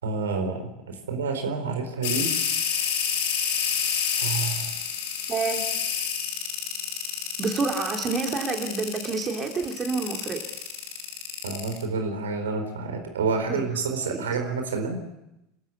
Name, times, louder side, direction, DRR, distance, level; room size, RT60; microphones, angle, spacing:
voice 1, 0.0-2.3 2.7-2.9 4.1-4.7 11.4-15.0, right 4 dB, 75° right, 5 dB, 4.5 m, -29 dB
sound 1, 2.0-11.8, left 7 dB, 60° left, 3.3 m, -28 dB
voice 2, 5.3-5.6 7.4-10.4 13.5-13.6 14.1-14.2, right 4 dB, 30° right, 3 dB, 3.0 m, -28 dB
29.5 x 13.5 x 8.3 m, 0.90 s
figure-of-eight pair, 75°, 0 cm